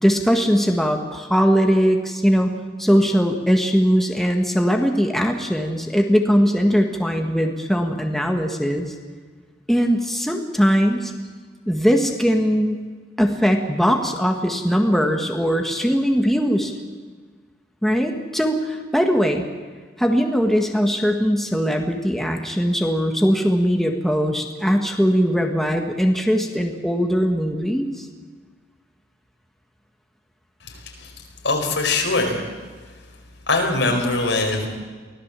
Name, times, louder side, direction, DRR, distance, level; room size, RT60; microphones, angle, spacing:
voice 1, 0.0-2.5 2.8-8.9 9.7-11.1 11.7-12.8 13.2-16.7 17.8-19.4 20.0-28.0, equal, ahead, 2 dB, 1.7 m, -20 dB
voice 2, 30.7-31.1 31.4-32.5 33.5-34.7, left 2 dB, 90° left, 2 dB, 5.0 m, -22 dB
24.0 x 17.0 x 7.6 m, 1.5 s
head